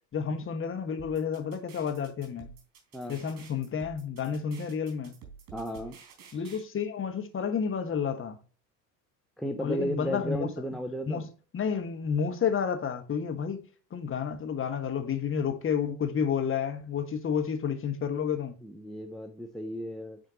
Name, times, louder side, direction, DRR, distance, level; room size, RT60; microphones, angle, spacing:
voice 1, 0.1-2.5 3.1-5.2 6.3-8.4 9.6-10.5 11.1-11.3 11.5-18.6, left 7 dB, 25° left, 1.2 m, -30 dB
sound 1, 1.0-6.6, right 6 dB, 50° right, 3.9 m, -50 dB
voice 2, 5.5-6.0 6.3-6.6 9.4-11.2 18.6-20.2, equal, ahead, 0.7 m, -34 dB
9.1 x 4.3 x 2.9 m
figure-of-eight pair, 75°, 50 cm